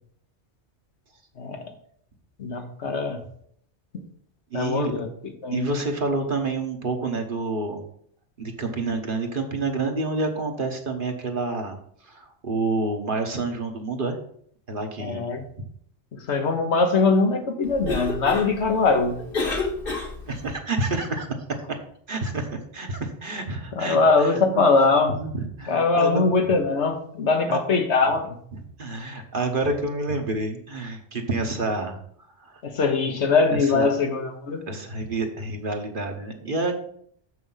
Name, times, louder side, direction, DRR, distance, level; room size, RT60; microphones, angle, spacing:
voice 1, 2.4-3.2 3.9-4.0 4.5-5.1 5.4-5.7 15.0-15.4 16.1-19.2 23.7-25.2 25.7-28.4 32.6-34.6, left 4 dB, 70° left, 5 dB, 1.4 m, -22 dB
voice 2, 4.5-5.0 5.5-7.8 8.4-14.2 14.7-15.3 20.3-21.8 22.1-24.6 25.2-26.2 27.5-27.6 28.5-32.0 32.3-32.6 33.5-33.9 34.7-36.7, right 3 dB, 50° right, 4 dB, 1.3 m, -28 dB
Cough, 17.6-20.5, left 3 dB, 50° left, 1.6 m, -30 dB
6.8 x 6.4 x 5.6 m, 0.64 s
omnidirectional pair, 1.2 m